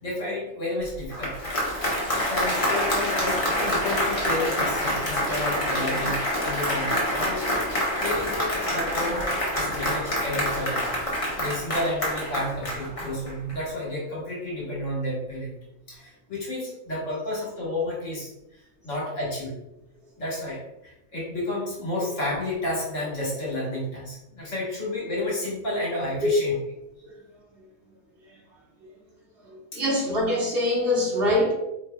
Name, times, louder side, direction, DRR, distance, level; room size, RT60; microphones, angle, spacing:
voice 1, 0.0-1.8 2.2-7.6 8.0-10.8 11.3-15.6 15.9-19.5 20.2-26.5 29.7-29.8, left 1 dB, 70° left, -5 dB, 1.7 m, -31 dB
Applause, 0.9-13.5, equal, 30° left, 0.9 m, -26 dB
voice 2, 29.5-31.5, left 1 dB, 50° right, -4 dB, 1.2 m, -24 dB
4.3 x 3.1 x 2.2 m, 0.88 s
omnidirectional pair, 1.3 m